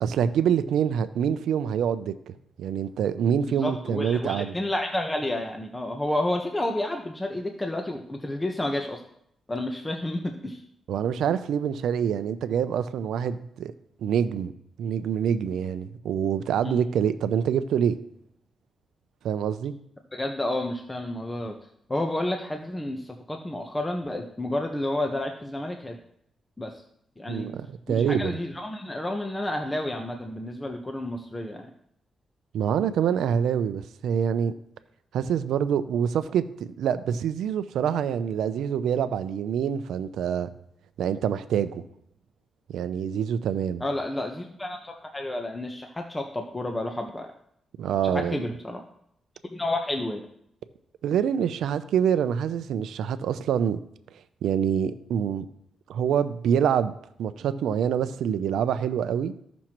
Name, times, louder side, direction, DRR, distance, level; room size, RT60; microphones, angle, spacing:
voice 1, 0.0-4.5 10.9-13.7 14.0-14.5 14.8-18.0 19.2-19.7 27.3-28.4 32.5-34.5 35.1-40.5 41.0-41.8 42.7-43.8 47.8-48.4 51.0-53.8 54.4-55.5 55.9-56.9 57.2-59.3, right 8 dB, 85° right, 0.5 m, -26 dB
voice 2, 3.6-9.0 9.5-10.6 16.6-16.8 20.1-21.6 21.9-26.0 26.6-26.8 27.2-27.5 27.9-31.7 43.8-47.3 48.0-48.8 49.5-50.2, left 1 dB, 20° left, 1.0 m, -30 dB
14.5 x 6.1 x 3.0 m
cardioid pair, 75°, 0 cm